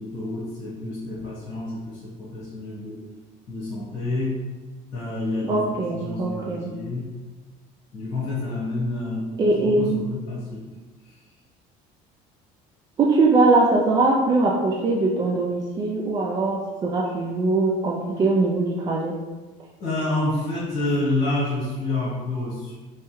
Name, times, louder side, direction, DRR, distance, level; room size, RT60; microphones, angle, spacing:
voice 1, 0.0-3.0 3.5-4.4 4.9-7.1 7.9-9.3 9.6-10.7 11.0-11.1 19.8-22.7, left 2 dB, 50° left, -7 dB, 1.4 m, -28 dB
voice 2, 5.5-6.7 9.4-10.0 13.0-19.1, right 3 dB, 25° right, -1 dB, 0.4 m, -21 dB
3.4 x 3.2 x 3.1 m, 1.3 s
cardioid pair, 145°, 15 cm